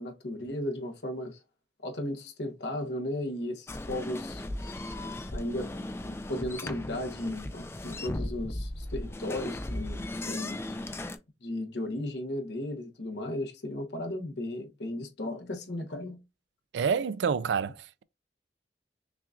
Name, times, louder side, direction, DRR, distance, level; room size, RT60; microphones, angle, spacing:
voice 1, 0.0-1.4 1.8-4.4 5.3-10.6 11.4-16.2, left 1 dB, 75° left, 0.9 m, -35 dB
sound 1, 3.7-11.2, left 1 dB, 15° left, 0.3 m, -37 dB
voice 2, 16.7-18.0, right 6 dB, 80° right, 0.3 m, -28 dB
5.7 x 2.5 x 2.3 m
head